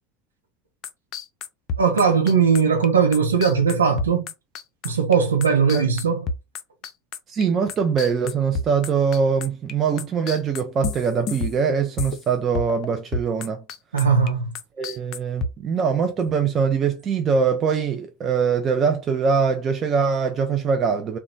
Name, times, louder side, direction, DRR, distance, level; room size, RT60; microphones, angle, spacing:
sound 1, 0.8-9.7 10.0-12.3 12.6-12.9 13.1-14.3 14.6-15.5, left 4 dB, 45° left, 0.4 m, -30 dB
voice 1, 1.8-4.3 4.8-6.3 13.9-14.5, right 6 dB, 75° right, 0.7 m, -19 dB
voice 2, 7.3-13.6 14.8-21.2, right 6 dB, 30° right, 0.5 m, -22 dB
2.9 x 2.2 x 3.8 m
figure-of-eight pair, 75°, 0 cm